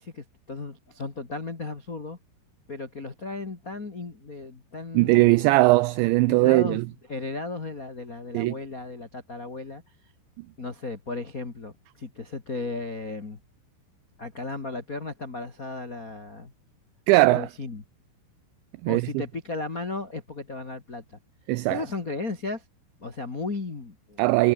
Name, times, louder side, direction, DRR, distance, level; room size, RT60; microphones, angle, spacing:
voice 1, 0.0-2.2 2.7-5.5 6.2-6.8 7.1-9.8 10.6-13.4 14.2-16.5 17.3-17.8 18.9-21.2 21.7-22.6 23.0-24.2, left 3 dB, 75° left, 0.8 m, -35 dB
voice 2, 4.9-6.8 8.3-8.5 17.1-17.5 18.8-19.1 21.5-21.8 24.2-24.5, right 21 dB, 90° right, 2.5 m, -19 dB
omnidirectional pair, 5.8 m